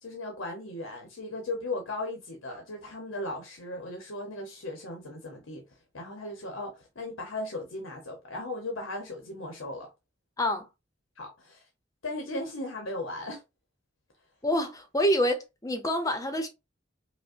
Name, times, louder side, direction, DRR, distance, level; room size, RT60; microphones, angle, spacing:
voice 1, 0.0-5.6 5.9-9.9 11.2-11.6 12.0-13.4, left 2 dB, 85° left, 0.8 m, -37 dB
voice 2, 14.4-16.5, equal, 15° left, 0.6 m, -27 dB
5.1 x 2.1 x 2.5 m
head